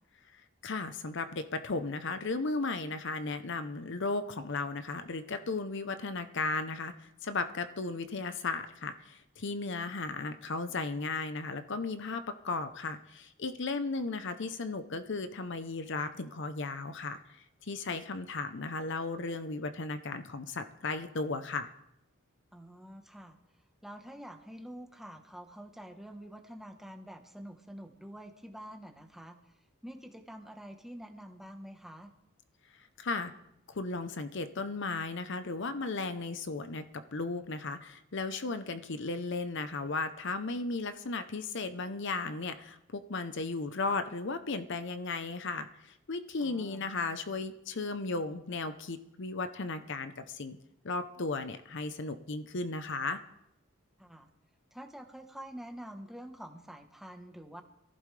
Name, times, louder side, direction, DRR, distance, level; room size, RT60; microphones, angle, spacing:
voice 1, 0.6-17.4 17.7-21.7 33.0-33.3 33.7-36.8 37.1-50.6 50.8-53.2, left 3 dB, 55° left, 10 dB, 0.8 m, -35 dB
voice 2, 22.5-23.4 23.8-29.4 29.8-32.1 46.4-46.9 54.0-54.3 54.7-57.6, equal, ahead, 4 dB, 1.1 m, -47 dB
22.5 x 15.0 x 3.3 m, 0.85 s
head